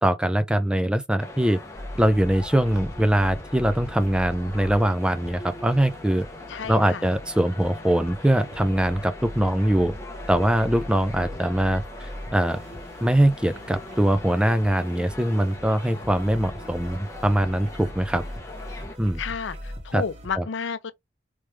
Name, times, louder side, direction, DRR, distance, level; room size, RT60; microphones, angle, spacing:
voice 1, 0.0-1.6 2.0-6.3 6.7-9.9 10.3-12.6 13.0-18.2 19.0-19.2 19.9-20.0 20.3-20.5, right 1 dB, 5° right, 0.3 m, -22 dB
sound 1, 1.2-19.0, left 2 dB, 15° left, 0.8 m, -41 dB
sound 2, 1.7-20.3, equal, 35° right, 1.4 m, -40 dB
voice 2, 6.5-7.0 19.2-20.9, left 6 dB, 75° left, 0.5 m, -31 dB
3.3 x 3.2 x 3.1 m
head